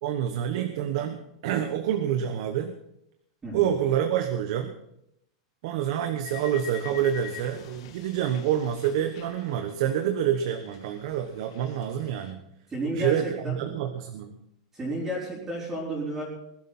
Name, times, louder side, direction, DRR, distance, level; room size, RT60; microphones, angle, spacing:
voice 1, 0.0-2.7 3.5-4.7 5.6-12.4 12.9-14.4, right 10 dB, 55° right, 7 dB, 1.2 m, -27 dB
sound 1, 6.2-10.2 10.4-12.3, left 10 dB, 60° left, 2.2 m, -45 dB
voice 2, 12.7-13.6 14.7-16.2, right 1 dB, 10° right, -8 dB, 4.4 m, -32 dB
20.5 x 12.0 x 4.3 m, 0.80 s
supercardioid pair, 160°, 3 cm